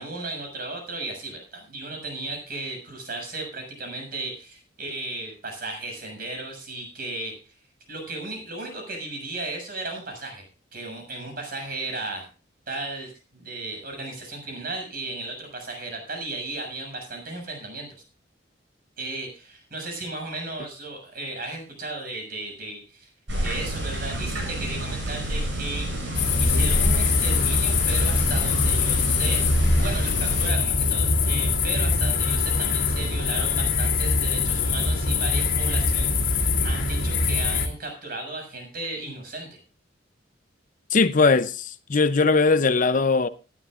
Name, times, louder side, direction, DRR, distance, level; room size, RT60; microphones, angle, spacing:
voice 1, 0.0-7.4 7.9-10.5 10.7-12.3 12.7-17.9 19.0-23.1 23.4-25.9 26.4-29.4 29.8-39.6, right 2 dB, 50° right, 6.8 m, -35 dB
sound 1, 23.3-30.5, right 1 dB, 70° right, 7.5 m, -29 dB
sound 2, 26.1-37.7, left 4 dB, 90° left, 2.5 m, -23 dB
voice 2, 40.9-43.3, left 4 dB, 40° left, 0.6 m, -20 dB
19.0 x 12.5 x 2.4 m
head